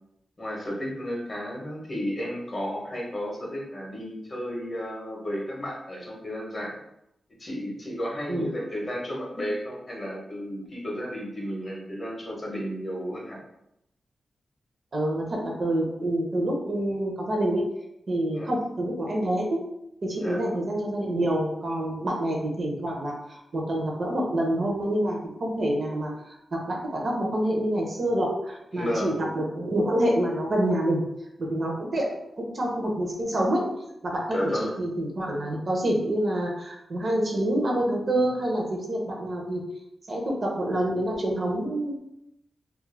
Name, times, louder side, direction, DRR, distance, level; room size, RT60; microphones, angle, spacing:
voice 1, 0.4-6.8 7.4-13.4 18.3-18.5 20.2-20.4 28.7-29.2 34.3-34.8, equal, 30° left, -2 dB, 0.7 m, -33 dB
voice 2, 14.9-17.6 18.1-19.5 20.0-23.1 23.5-26.1 26.5-31.0 31.5-32.1 32.5-33.6 34.0-39.6 40.1-42.0, right 1 dB, 45° right, -1 dB, 0.5 m, -27 dB
2.3 x 2.1 x 3.1 m, 0.83 s
wide cardioid pair, 140°, 0 cm